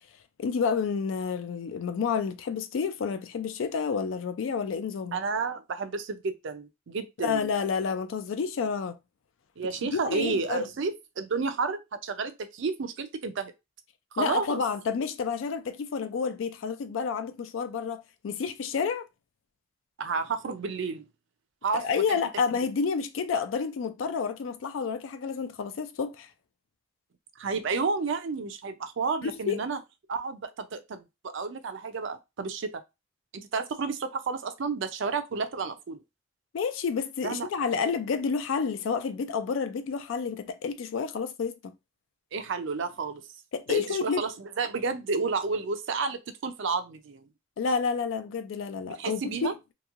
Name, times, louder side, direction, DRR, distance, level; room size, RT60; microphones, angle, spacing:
voice 1, 0.4-5.2 7.2-9.0 9.8-10.6 14.2-19.1 21.7-26.3 29.2-29.6 36.5-41.7 43.5-44.2 47.6-49.5, left 5 dB, 70° left, 0.3 m, -30 dB
voice 2, 5.1-7.5 9.6-13.5 14.1-14.6 20.0-21.0 21.6-21.8 22.1-22.2 27.4-29.8 30.1-32.7 33.3-36.0 37.2-37.7 42.3-43.2 43.7-47.2 49.0-49.5, right 4 dB, 65° right, 0.5 m, -31 dB
3.0 x 2.6 x 2.4 m
head